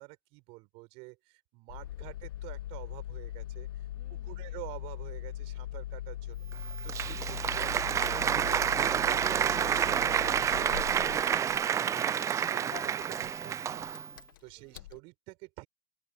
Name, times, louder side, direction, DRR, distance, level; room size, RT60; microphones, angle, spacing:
voice 1, 0.0-3.8 4.2-11.3 12.0-14.0 14.4-15.7, right 27 dB, 55° right, 5.5 m, -48 dB
Engine starting, 1.7-15.0, left 13 dB, 75° left, 1.4 m, -41 dB
voice 2, 3.9-4.6 14.6-15.0, left 2 dB, 10° left, 8.0 m, -62 dB
Applause, 6.5-14.1, right 8 dB, 25° right, 0.6 m, -29 dB
open air
hypercardioid pair, 80°, 11 cm